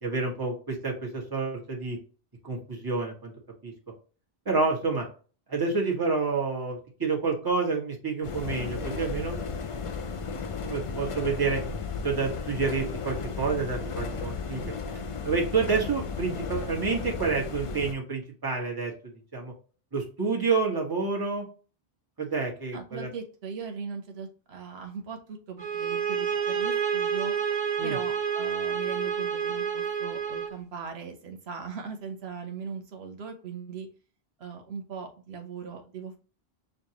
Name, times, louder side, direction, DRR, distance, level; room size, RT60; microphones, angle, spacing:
voice 1, 0.0-2.0 2.4-3.3 3.6-3.7 4.4-5.0 5.5-9.4 10.7-11.6 12.0-15.0 15.2-18.9 19.3-19.5 19.9-21.5 22.2-23.1 27.8-28.0, right 4 dB, 20° right, -1 dB, 1.1 m, -29 dB
sound 1, 8.2-17.9, left 5 dB, 45° left, 0.4 m, -34 dB
voice 2, 22.7-27.3 27.8-33.9 34.4-36.2, right 6 dB, 85° right, 5 dB, 1.1 m, -39 dB
sound 2, 25.6-30.6, right 7 dB, 45° right, 0.9 m, -29 dB
6.5 x 2.3 x 2.8 m, 0.38 s
omnidirectional pair, 1.0 m